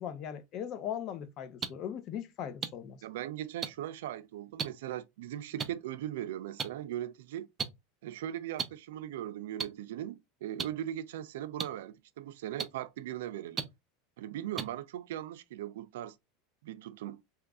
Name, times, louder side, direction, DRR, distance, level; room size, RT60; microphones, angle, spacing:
voice 1, 0.0-3.0, left 9 dB, 45° left, 0.6 m, -39 dB
sound 1, 1.6-1.7 2.6-2.7 3.6-3.7 4.6-4.7 5.6-5.7 6.6-6.7 7.6-7.7 8.6-8.7 9.6-9.7 10.6-10.7 11.6-11.7 12.6-12.7 13.6-13.7 14.6-14.7, right 6 dB, 25° right, 0.5 m, -32 dB
voice 2, 3.0-7.5 8.0-13.7 14.2-16.2 16.6-17.2, right 12 dB, 80° right, 0.3 m, -39 dB
2.9 x 2.5 x 3.5 m
supercardioid pair, 130°, 0 cm